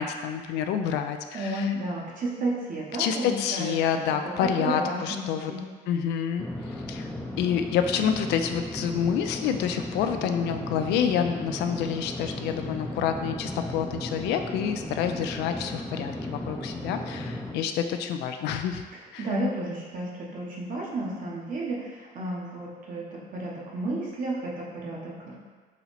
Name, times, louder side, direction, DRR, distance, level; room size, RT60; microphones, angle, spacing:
voice 1, 0.0-1.7 3.0-5.5 5.9-7.1 7.4-18.8 19.1-19.3, left 8 dB, 85° left, 7 dB, 0.4 m, -28 dB
voice 2, 1.3-3.8 4.2-5.6 19.2-25.4, right 1 dB, 50° right, -3 dB, 1.1 m, -32 dB
sound 1, 6.4-17.5, left 1 dB, 5° left, 0.5 m, -36 dB
4.1 x 2.9 x 4.1 m, 1.5 s
cardioid pair, 110°, 17 cm